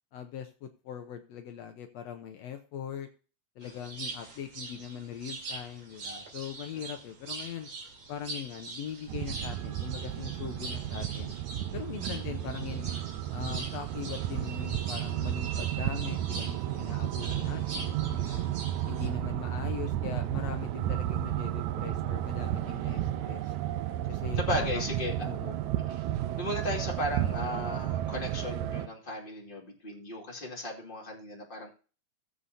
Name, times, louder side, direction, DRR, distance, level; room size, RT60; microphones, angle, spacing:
voice 1, 0.1-3.1 3.6-7.7 8.1-11.4 11.7-13.0 13.3-18.5 18.9-23.5 24.1-24.9 25.2-25.6, left 9 dB, 70° left, 6 dB, 1.8 m, -41 dB
sound 1, 3.6-19.1, right 3 dB, 65° right, 3.7 m, -43 dB
sound 2, 9.1-28.9, right 12 dB, 80° right, 2.1 m, -32 dB
voice 2, 17.2-17.6 22.8-23.0 24.4-25.1 25.9-26.0 26.4-31.7, left 1 dB, 20° left, -1 dB, 2.3 m, -35 dB
19.0 x 7.6 x 2.8 m, 0.37 s
omnidirectional pair, 3.4 m